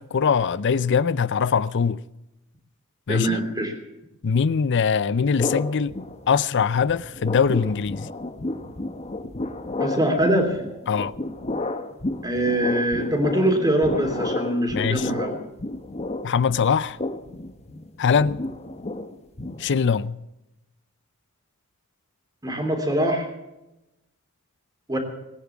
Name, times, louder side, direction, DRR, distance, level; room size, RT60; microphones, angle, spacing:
voice 1, 0.0-2.0 3.1-3.4 4.2-6.0 6.3-8.1 10.9-11.1 14.7-15.1 16.2-17.0 18.0-18.4 19.6-20.2, left 6 dB, 55° left, 0.5 m, -22 dB
voice 2, 3.1-3.7 9.8-10.6 12.2-15.4 22.4-23.3 24.9-25.0, right 1 dB, 20° right, 3.2 m, -23 dB
sound 1, 5.4-6.6 6.9-20.0, left 2 dB, 30° left, 1.0 m, -31 dB
19.5 x 9.7 x 7.2 m
head